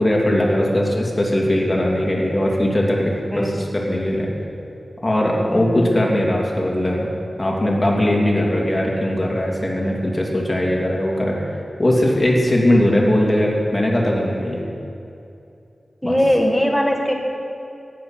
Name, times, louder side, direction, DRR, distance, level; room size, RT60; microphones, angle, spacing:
voice 1, 0.0-4.3 5.0-7.1 7.4-11.4 11.8-14.6 16.0-16.2, left 1 dB, 25° left, -2 dB, 2.7 m, -19 dB
voice 2, 5.5-5.9 16.0-17.1, equal, 5° left, 2 dB, 1.5 m, -20 dB
15.0 x 9.9 x 5.8 m, 2.7 s
wide cardioid pair, 80°, 0 cm